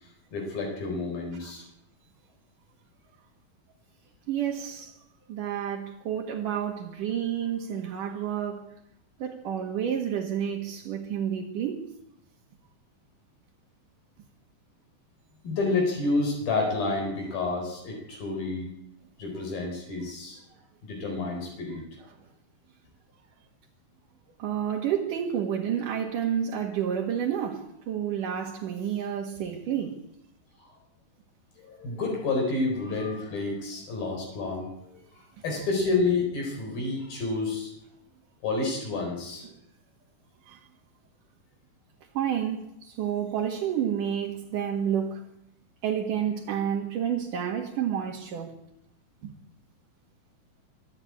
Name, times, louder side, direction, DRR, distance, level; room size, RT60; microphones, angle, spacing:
voice 1, 0.3-1.6 15.4-18.7 19.2-20.4 20.8-21.8 31.6-34.7 35.4-37.7 38.4-39.4, left 3 dB, 75° left, 6.1 m, -29 dB
voice 2, 4.3-5.0 5.3-8.7 9.2-11.9 24.4-30.0 34.0-34.1 35.4-35.5 39.4-39.5 40.5-40.6 42.1-45.2 45.8-48.6 49.2-49.3, right 9 dB, 65° right, 3.2 m, -30 dB
25.0 x 13.0 x 8.6 m
omnidirectional pair, 4.2 m